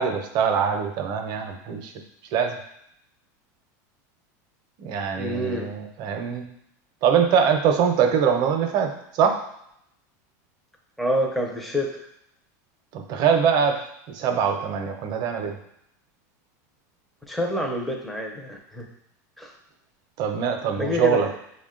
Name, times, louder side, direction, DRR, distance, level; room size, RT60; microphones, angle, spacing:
voice 1, 0.0-1.9 2.3-2.6 4.8-6.5 7.0-9.4 12.9-13.8 14.1-15.6 20.2-21.3, right 7 dB, 45° right, 5 dB, 0.6 m, -23 dB
voice 2, 5.2-5.7 11.0-11.9 17.3-18.9 19.4-19.5 20.8-21.2, equal, ahead, 0 dB, 0.5 m, -27 dB
4.8 x 2.2 x 3.6 m, 0.74 s
supercardioid pair, 145°, 10 cm